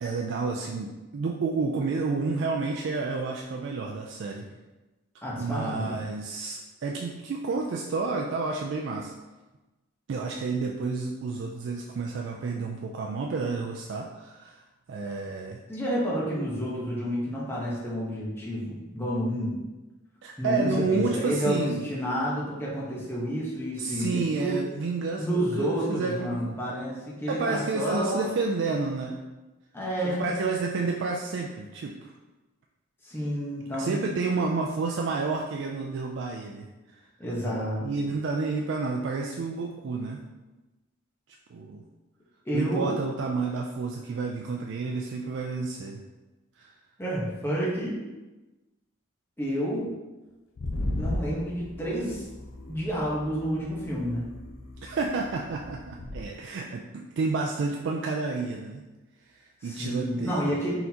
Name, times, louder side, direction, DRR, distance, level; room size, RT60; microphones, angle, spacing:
voice 1, 0.0-4.5 5.4-9.1 10.1-14.6 14.9-15.6 20.2-21.9 23.8-26.6 27.3-29.2 30.0-32.1 33.7-37.0 37.8-40.2 41.5-41.8 42.5-46.0 46.6-46.7 54.8-58.8 59.3-60.5, right 4 dB, 55° right, 0 dB, 0.3 m, -30 dB
voice 2, 5.2-5.9 15.7-19.5 20.4-24.6 25.2-28.3 29.7-30.3 33.0-34.1 37.2-37.8 42.4-42.9 47.0-48.0 49.4-49.9 50.9-52.2 52.7-54.3 59.6-60.7, equal, 10° left, -6 dB, 1.0 m, -30 dB
sound 1, 50.6-56.2, left 1 dB, 70° left, 0.6 m, -36 dB
4.1 x 3.8 x 2.8 m, 1.1 s
head